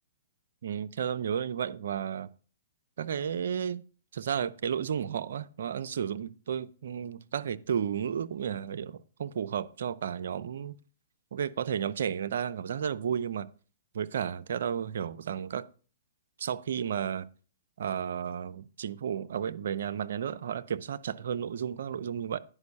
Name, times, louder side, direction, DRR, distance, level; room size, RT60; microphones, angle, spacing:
voice 1, 0.6-2.3 3.0-3.8 4.1-10.8 11.3-13.5 13.9-15.6 16.4-17.3 17.8-22.4, right 8 dB, 70° right, 0.5 m, -33 dB
9.9 x 5.2 x 5.4 m
hypercardioid pair, 125°, 0 cm